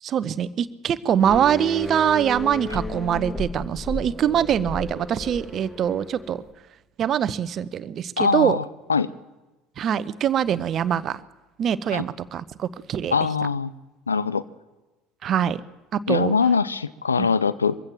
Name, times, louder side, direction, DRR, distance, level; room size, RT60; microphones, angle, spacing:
voice 1, 0.0-6.4 7.0-8.6 9.8-11.2 11.6-13.2 15.2-15.6 15.9-16.3 17.2-17.3, right 9 dB, 40° right, 16 dB, 0.9 m, -23 dB
sound 1, 1.2-6.5, left 1 dB, 10° left, 1.9 m, -34 dB
voice 2, 8.2-8.6 8.9-9.1 11.9-12.0 13.1-13.7 14.1-14.4 16.1-17.8, left 5 dB, 80° left, 17 dB, 0.6 m, -22 dB
23.0 x 15.5 x 7.3 m, 1.1 s
figure-of-eight pair, 60°, 0 cm